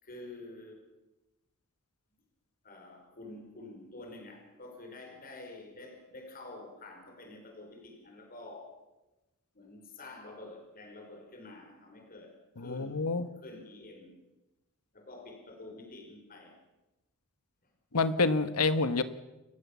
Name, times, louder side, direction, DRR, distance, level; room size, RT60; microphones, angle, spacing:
voice 1, 0.0-0.8 2.6-8.8 9.5-13.1 13.4-14.1 14.9-16.6, left 2 dB, 40° left, 3 dB, 5.0 m, -48 dB
voice 2, 12.6-13.3 17.9-19.0, left 3 dB, 90° left, 12 dB, 1.3 m, -27 dB
28.5 x 15.5 x 7.4 m, 1.0 s
head